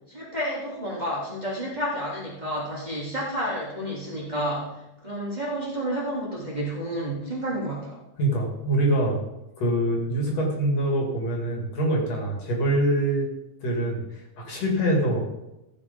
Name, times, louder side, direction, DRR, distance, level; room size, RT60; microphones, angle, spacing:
voice 1, 0.1-8.0, equal, 15° right, -7 dB, 3.0 m, -30 dB
voice 2, 8.2-9.2 9.6-13.3 13.6-15.2, right 1 dB, 60° left, 0 dB, 3.4 m, -24 dB
14.5 x 6.7 x 5.2 m, 0.94 s
omnidirectional pair, 3.3 m